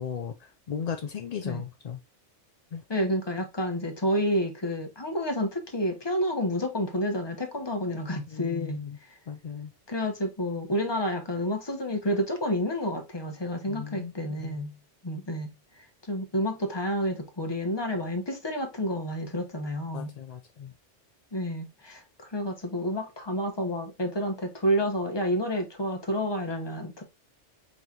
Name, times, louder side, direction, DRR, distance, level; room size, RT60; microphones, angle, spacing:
voice 1, 0.0-2.0 2.7-2.8 8.3-9.0 9.3-9.7 13.7-14.6 19.9-20.7, left 7 dB, 60° left, 0.4 m, -36 dB
voice 2, 2.9-8.8 9.9-14.8 15.0-15.5 16.1-20.1 21.3-22.0 22.3-27.0, equal, 25° left, 1.0 m, -29 dB
4.9 x 3.9 x 2.8 m
omnidirectional pair, 1.2 m